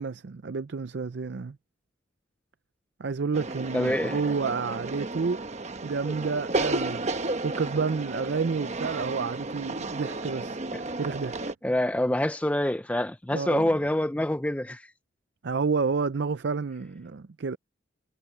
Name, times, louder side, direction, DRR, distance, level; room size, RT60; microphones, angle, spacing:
voice 1, 0.0-1.6 3.0-5.4 5.8-7.1 7.4-10.6 11.0-11.4 13.3-13.7 15.4-17.6, right 5 dB, 60° right, 0.5 m, -30 dB
sound 1, 3.3-11.5, right 2 dB, 35° right, 1.0 m, -33 dB
voice 2, 3.7-4.2 11.6-14.8, left 1 dB, 5° left, 0.5 m, -26 dB
head